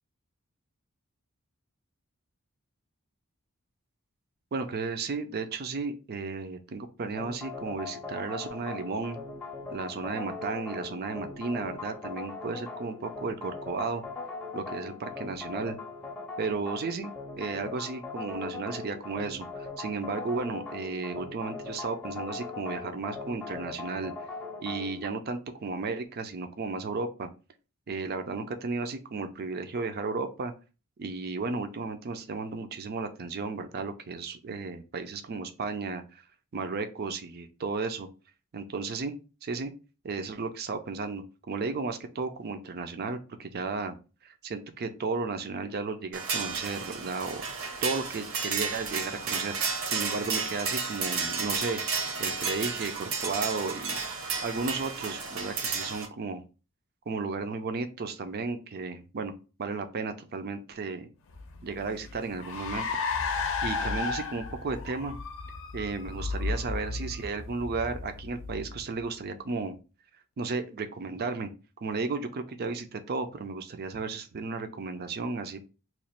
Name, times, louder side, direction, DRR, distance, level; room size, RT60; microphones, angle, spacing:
voice 1, 4.5-9.2 9.7-14.0 14.5-15.8 16.4-17.1 17.4-24.1 24.6-27.3 27.9-30.5 31.0-36.2 36.5-38.1 38.5-39.2 39.4-39.7 40.0-43.9 44.2-51.8 52.2-54.0 54.4-56.4 57.1-59.3 59.6-61.1 61.6-62.9 63.6-65.2 65.7-69.8 70.4-71.5 71.8-75.7, right 4 dB, 45° right, 8 dB, 0.4 m, -34 dB
sound 1, 7.2-25.1, left 4 dB, 5° left, 0.6 m, -40 dB
sound 2, 46.1-56.1, right 5 dB, 65° right, 0.9 m, -32 dB
Car, 61.3-69.1, left 4 dB, 60° left, 0.5 m, -34 dB
3.0 x 2.4 x 4.2 m, 0.33 s
head